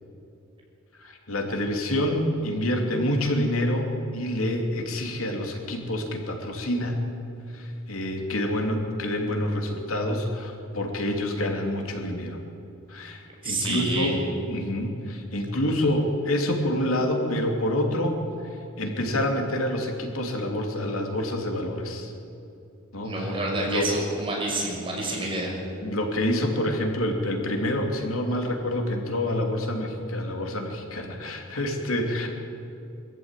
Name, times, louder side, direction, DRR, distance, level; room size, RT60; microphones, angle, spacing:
voice 1, 1.0-7.0 7.5-12.4 12.9-14.2 14.5-18.2 18.8-22.1 22.9-23.3 23.7-23.8 25.8-32.3, left 1 dB, 85° left, 2 dB, 3.1 m, -27 dB
voice 2, 13.4-14.1 23.0-25.6, right 1 dB, 25° right, -2 dB, 6.1 m, -28 dB
24.0 x 14.5 x 9.2 m, 2.6 s
head